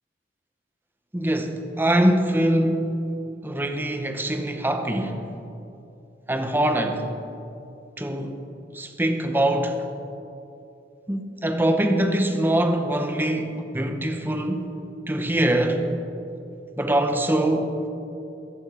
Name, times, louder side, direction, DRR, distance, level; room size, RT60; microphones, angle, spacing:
voice 1, 1.1-2.9 3.4-5.2 6.3-7.1 8.0-8.4 8.7-9.8 11.1-14.7 15.1-15.8 16.8-17.8, right 1 dB, 10° right, 0.9 m, -23 dB
22.0 x 8.3 x 4.4 m
head